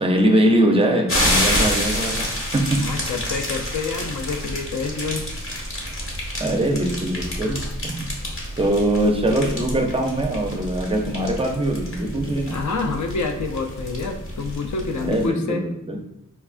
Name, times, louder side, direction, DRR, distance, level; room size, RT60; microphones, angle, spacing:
voice 1, 0.0-2.9 6.4-8.1 8.6-12.6 15.0-16.0, right 1 dB, 15° right, 2 dB, 0.5 m, -22 dB
sound 1, 1.1-15.3, left 1 dB, 40° left, 0.9 m, -28 dB
voice 2, 2.8-5.2 12.5-15.6, left 4 dB, 60° left, 4 dB, 0.5 m, -27 dB
4.5 x 2.3 x 2.4 m, 0.77 s
wide cardioid pair, 120°, 33 cm